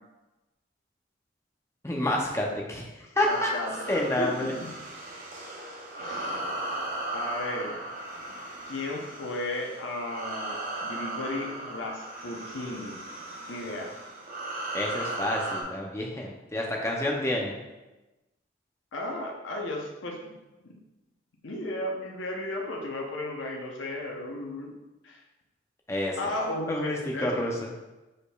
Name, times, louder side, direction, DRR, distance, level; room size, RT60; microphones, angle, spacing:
voice 1, 1.8-2.9 3.2-3.5 3.9-4.5 14.7-17.6 25.9-26.3 26.7-27.6, left 1 dB, 15° left, -1 dB, 0.5 m, -28 dB
voice 2, 3.2-4.7 6.0-6.4 7.1-7.9 8.7-13.0 13.5-13.9 18.9-20.3 20.6-20.7 21.4-24.7 25.0-25.2 26.2-27.5, left 1 dB, 80° left, 0 dB, 0.7 m, -35 dB
sound 1, 3.2-15.6, right 2 dB, 45° right, 0.7 m, -37 dB
5.0 x 4.3 x 2.3 m, 1.1 s
head